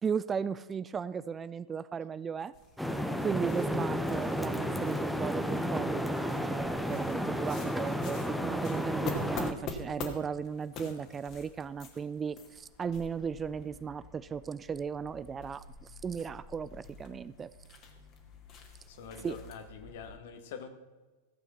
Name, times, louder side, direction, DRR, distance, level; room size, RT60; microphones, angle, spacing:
voice 1, 0.0-2.5 3.2-17.5 19.2-19.4, right 6 dB, 20° right, 17 dB, 0.3 m, -36 dB
sound 1, 2.5-20.2, left 4 dB, 35° left, 2.2 m, -47 dB
sound 2, 2.8-9.5, equal, ahead, 0.9 m, -32 dB
voice 2, 18.9-20.7, left 6 dB, 55° left, 8 dB, 1.6 m, -45 dB
15.5 x 8.4 x 5.7 m, 1.2 s
figure-of-eight pair, 90°, 0 cm